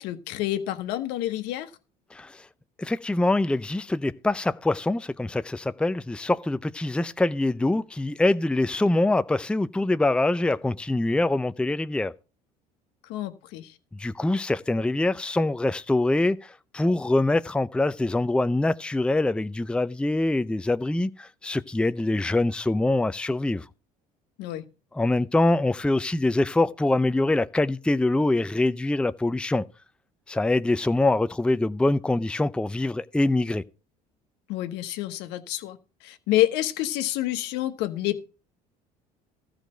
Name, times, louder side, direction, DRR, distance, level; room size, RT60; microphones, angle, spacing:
voice 1, 0.0-1.7 13.0-13.7 24.4-24.6 34.5-38.2, left 14 dB, 70° left, 1.2 m, -28 dB
voice 2, 2.1-2.5 2.8-12.1 13.9-23.7 24.9-29.7 30.3-33.6, left 2 dB, 5° left, 0.5 m, -24 dB
13.5 x 5.0 x 7.7 m
hypercardioid pair, 70°, 18 cm